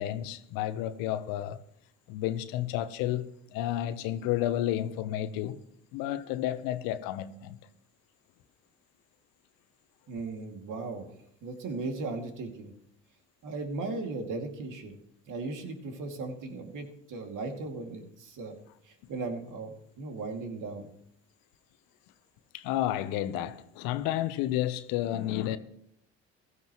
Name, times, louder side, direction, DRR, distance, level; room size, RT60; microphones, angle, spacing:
voice 1, 0.0-1.6 2.1-5.6 5.9-7.6 22.5-25.6, left 13 dB, 70° left, 1.0 m, -31 dB
voice 2, 10.1-11.1 11.4-12.7 13.4-15.0 15.3-18.5 18.8-20.9, right 3 dB, 60° right, 2.6 m, -37 dB
15.5 x 14.0 x 3.1 m
hypercardioid pair, 60°, 35 cm